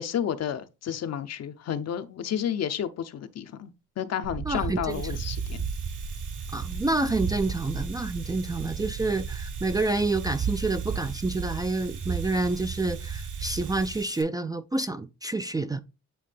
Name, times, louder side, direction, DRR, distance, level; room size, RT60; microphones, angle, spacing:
voice 1, 0.0-3.7 4.0-5.6, left 9 dB, 60° left, 0.7 m, -31 dB
sound 1, 4.2-14.0, right 6 dB, 50° right, 1.1 m, -34 dB
voice 2, 4.4-5.2 6.5-15.8, right 2 dB, 15° right, 0.4 m, -28 dB
Domestic sounds home sounds, 4.7-14.2, right 6 dB, 80° right, 1.7 m, -47 dB
8.6 x 3.2 x 3.4 m
cardioid pair, 90°, 30 cm